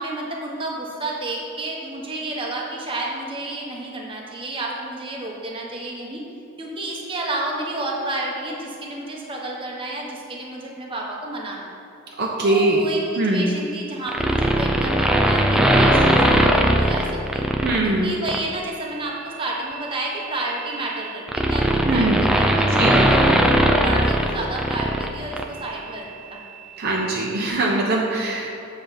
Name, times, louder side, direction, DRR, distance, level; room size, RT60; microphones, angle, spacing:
voice 1, 0.0-6.2 6.6-11.8 12.4-17.1 17.3-17.4 17.8-23.5 23.8-26.4, right 2 dB, 25° right, -2 dB, 1.2 m, -30 dB
voice 2, 12.2-12.8 13.2-13.5 17.6-18.1 21.8-22.3 22.7-23.0 26.8-28.6, right 2 dB, 45° right, -2 dB, 0.9 m, -22 dB
sound 1, 14.1-17.8 18.3-18.5 19.7-25.1 25.3-25.4, right 1 dB, 5° right, 0.4 m, -19 dB
7.9 x 4.7 x 7.2 m, 2.8 s
head